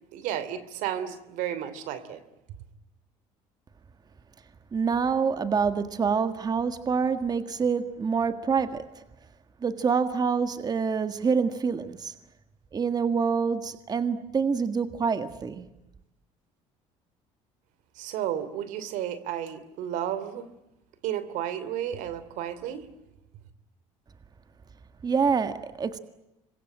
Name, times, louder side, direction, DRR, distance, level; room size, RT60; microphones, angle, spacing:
voice 1, 0.1-2.2 18.0-20.5 21.0-22.9, right 10 dB, 80° right, 3.0 m, -32 dB
voice 2, 4.7-8.8 9.6-12.1 12.7-15.7 25.0-26.0, right 5 dB, 30° right, 1.7 m, -26 dB
27.0 x 23.0 x 8.9 m
cardioid pair, 105°, 13 cm